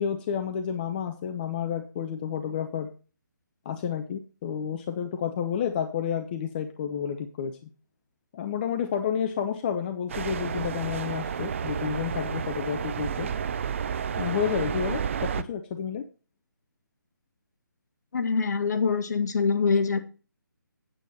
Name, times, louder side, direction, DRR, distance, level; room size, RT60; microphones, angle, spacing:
voice 1, 0.0-2.9 3.6-7.6 8.3-13.3 14.2-16.0, left 8 dB, 25° left, 6 dB, 0.8 m, -30 dB
sound 1, 10.1-15.4, right 7 dB, 40° right, 0.6 m, -31 dB
voice 2, 18.1-20.0, left 5 dB, 55° left, 7 dB, 1.6 m, -24 dB
9.1 x 8.2 x 4.2 m, 0.35 s
hypercardioid pair, 160°, 11 cm